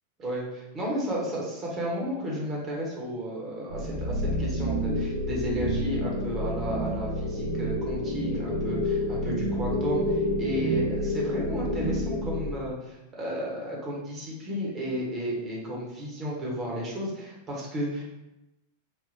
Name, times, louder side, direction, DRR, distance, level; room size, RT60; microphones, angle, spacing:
voice 1, 0.2-18.2, equal, 25° right, -3 dB, 0.9 m, -33 dB
sound 1, 3.7-12.5, equal, 55° right, 1.5 m, -29 dB
3.5 x 2.1 x 2.6 m, 0.94 s
figure-of-eight pair, 90°, 0 cm